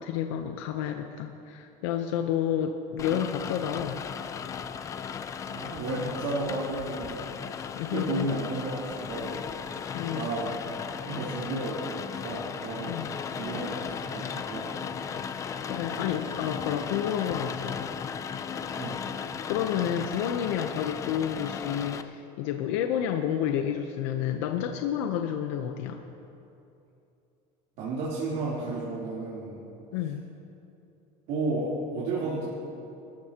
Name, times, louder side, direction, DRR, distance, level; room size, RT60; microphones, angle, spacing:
voice 1, 0.0-4.0 7.7-8.3 9.9-10.3 12.8-13.1 15.2-15.4 15.7-17.8 19.5-26.0 29.9-30.2, left 9 dB, 80° left, 5 dB, 0.8 m, -30 dB
Rain, 3.0-22.0, left 7 dB, 20° left, 0.4 m, -36 dB
voice 2, 5.5-9.4 10.1-10.5 11.1-13.0 13.4-14.8 18.7-19.0 27.8-29.6 31.3-32.4, right 2 dB, 60° right, -9 dB, 3.4 m, -33 dB
26.0 x 13.5 x 3.0 m, 2.8 s
cardioid pair, 165°, 14 cm